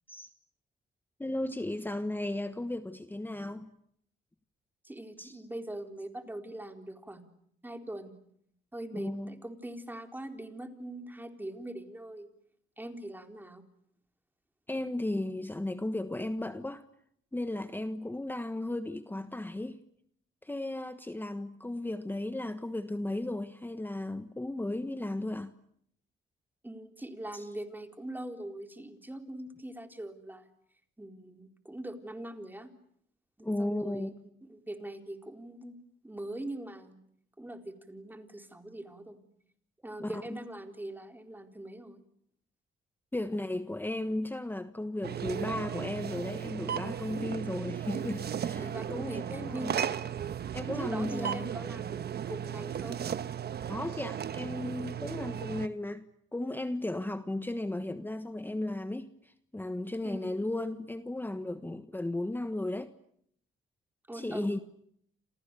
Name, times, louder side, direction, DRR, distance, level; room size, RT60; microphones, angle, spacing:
voice 1, 1.2-3.7 5.2-5.4 8.9-9.3 14.7-16.8 17.3-19.8 20.4-25.5 27.3-27.4 33.4-34.2 40.0-40.4 43.1-49.8 50.5-51.5 53.7-56.0 56.3-62.9 64.1-64.6, left 1 dB, 10° left, 1.4 m, -35 dB
voice 2, 4.8-7.2 7.6-8.2 8.7-12.3 12.8-13.6 26.6-30.5 31.0-32.7 33.4-35.8 36.0-37.0 37.4-39.2 39.8-42.0 48.6-49.9 50.7-53.0 60.0-60.5 64.1-64.6, right 1 dB, 10° right, 4.1 m, -42 dB
sound 1, 45.0-55.7, right 9 dB, 55° right, 1.3 m, -35 dB
29.5 x 28.5 x 6.9 m
cardioid pair, 90°, 20 cm